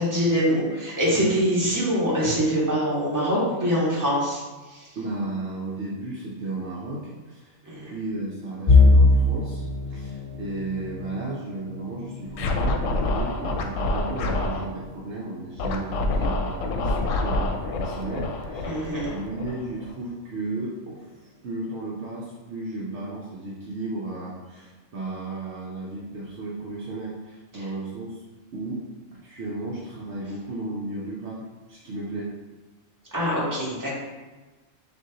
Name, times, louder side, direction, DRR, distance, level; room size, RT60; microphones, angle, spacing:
voice 1, 0.0-5.0 7.6-7.9 18.6-19.2 27.5-27.6 33.1-33.9, equal, 15° right, -7 dB, 1.2 m, -24 dB
voice 2, 4.9-7.6 7.8-18.8 19.1-28.2 28.5-28.8 29.1-32.3, right 2 dB, 65° right, -5 dB, 0.9 m, -34 dB
sound 1, 8.7-20.5 20.9-21.2 21.6-21.7 22.6-23.1, left 3 dB, 35° left, 0.6 m, -25 dB
Scratching (performance technique), 12.3-14.7 15.6-19.9, left 2 dB, 80° left, 0.9 m, -27 dB
6.3 x 2.6 x 2.8 m, 1.2 s
omnidirectional pair, 1.4 m